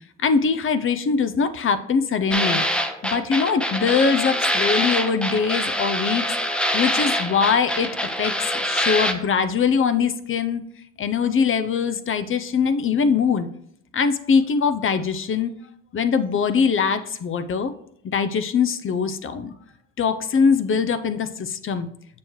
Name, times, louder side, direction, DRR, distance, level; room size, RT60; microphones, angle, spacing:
voice 1, 0.2-2.6 3.0-6.3 6.7-7.9 8.2-10.6 11.0-13.5 13.9-15.5 15.9-17.7 18.0-19.5 20.0-21.9, left 5 dB, 45° left, 11 dB, 0.6 m, -22 dB
sound 1, 2.3-9.1, equal, 5° left, 0.7 m, -24 dB
6.9 x 6.3 x 3.1 m, 0.71 s
cardioid pair, 90°, 30 cm